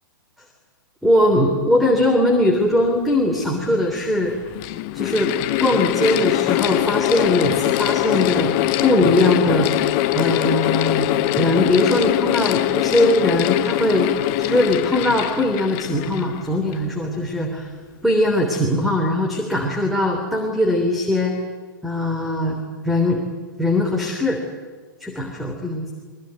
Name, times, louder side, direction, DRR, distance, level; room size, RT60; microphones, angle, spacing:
voice 1, 1.0-4.3 4.9-5.3 5.6-8.5 8.8-9.7 10.1-11.1 11.3-14.1 14.4-17.7 18.0-21.3 21.8-22.6 22.8-23.2 23.6-24.4 25.0-25.9, left 1 dB, ahead, 2 dB, 3.4 m, -20 dB
Mechanical fan, 3.3-3.4 4.2-16.9, left 15 dB, 35° left, 1.0 m, -22 dB
23.5 x 22.5 x 9.5 m, 1.5 s
figure-of-eight pair, 115°, 11 cm